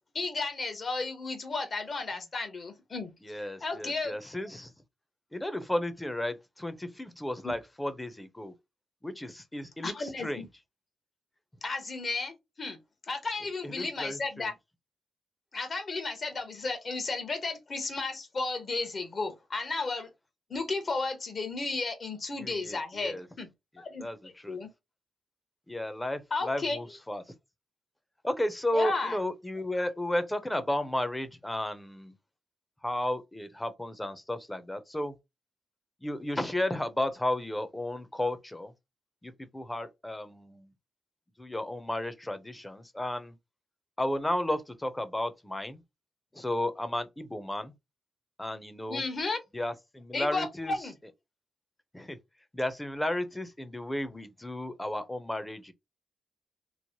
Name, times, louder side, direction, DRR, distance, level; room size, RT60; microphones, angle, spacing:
voice 1, 0.1-4.1 7.4-7.5 9.8-10.5 11.6-12.8 13.1-14.5 15.5-20.1 20.5-23.5 23.8-24.0 24.5-24.7 26.3-26.8 28.7-29.2 48.9-49.4 50.1-50.9, left 3 dB, 50° left, 1.0 m, -33 dB
voice 2, 3.2-4.7 5.3-8.5 9.0-10.5 13.6-14.5 22.4-23.3 24.0-24.6 25.7-27.2 28.2-32.1 32.8-35.1 36.0-38.7 39.2-40.7 41.4-43.3 44.0-45.8 46.3-47.7 48.4-49.0 49.5-50.7 51.9-52.2 52.5-55.7, left 1 dB, 15° left, 0.7 m, -33 dB
3.1 x 2.1 x 2.9 m
cardioid pair, 55°, 0 cm